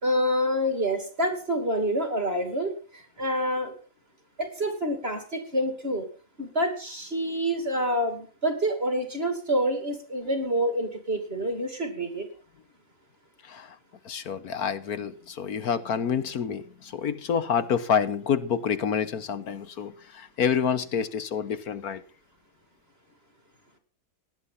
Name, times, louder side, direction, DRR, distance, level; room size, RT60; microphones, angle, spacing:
voice 1, 0.0-3.7 4.4-6.1 6.4-12.3, equal, 35° right, 7 dB, 2.7 m, -27 dB
voice 2, 14.0-22.0, left 7 dB, 65° left, 13 dB, 1.4 m, -28 dB
18.0 x 10.5 x 5.6 m, 0.40 s
omnidirectional pair, 1.8 m